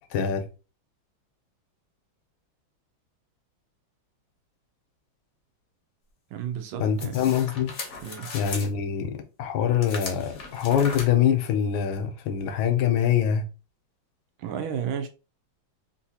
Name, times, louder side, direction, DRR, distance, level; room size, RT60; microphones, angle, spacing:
voice 1, 0.1-0.4 6.8-7.7 8.3-13.4, left 8 dB, 80° left, 1.4 m, -24 dB
voice 2, 6.3-7.4 8.0-8.3 8.6-8.7 14.4-15.1, right 8 dB, 85° right, 1.5 m, -33 dB
sound 1, 7.0-8.7 9.8-11.0, left 4 dB, 55° left, 0.8 m, -37 dB
3.7 x 2.6 x 2.7 m
omnidirectional pair, 2.2 m